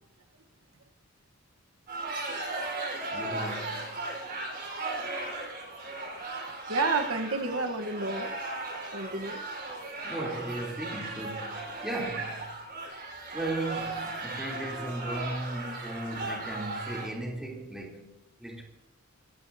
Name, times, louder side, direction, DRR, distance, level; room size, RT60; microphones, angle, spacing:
sound 1, 1.9-17.1, right 2 dB, 40° right, 4.8 m, -36 dB
voice 1, 2.9-3.9 10.0-12.3 13.3-18.6, right 1 dB, ahead, 3.4 m, -37 dB
voice 2, 6.7-8.3 8.9-9.4 12.0-12.2, right 3 dB, 70° right, 1.3 m, -30 dB
25.5 x 16.0 x 2.8 m
head